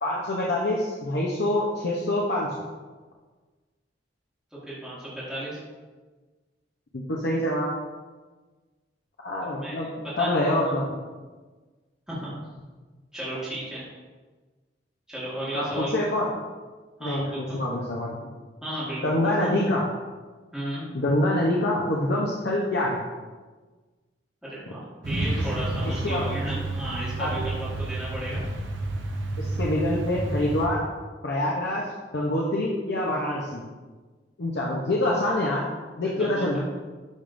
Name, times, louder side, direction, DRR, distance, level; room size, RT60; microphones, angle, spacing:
voice 1, 0.0-2.6 6.9-7.7 9.2-9.9 10.2-10.9 15.5-16.3 17.0-18.3 19.0-19.9 20.9-23.0 25.9-26.2 27.2-27.4 29.4-30.8 31.2-31.9 32.1-33.6 34.4-35.6 36.0-36.6, left 1 dB, 65° left, -4 dB, 0.7 m, -26 dB
voice 2, 4.6-5.6 9.4-10.4 12.1-12.3 13.1-13.8 15.1-16.0 17.0-17.6 18.6-19.0 19.4-19.5 20.5-20.8 24.4-28.4 36.2-36.6, right 1 dB, 5° right, -10 dB, 1.6 m, -34 dB
Truck, 25.0-30.7, right 2 dB, 85° right, 0.8 m, -30 dB
10.5 x 3.5 x 2.6 m, 1.3 s
head